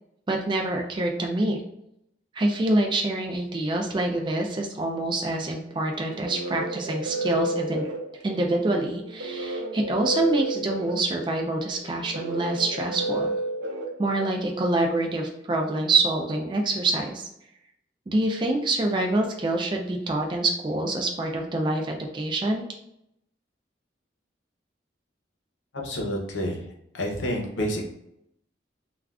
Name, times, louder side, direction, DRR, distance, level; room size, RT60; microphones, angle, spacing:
voice 1, 0.3-1.6 2.3-7.9 8.2-13.3 14.0-17.3 18.1-22.6, right 2 dB, 25° right, 1 dB, 0.3 m, -26 dB
sound 1, 5.9-14.6, right 2 dB, 75° right, 0.6 m, -32 dB
voice 2, 25.8-26.6 26.9-27.8, equal, 90° left, 0 dB, 0.7 m, -28 dB
2.4 x 2.3 x 3.3 m, 0.79 s
head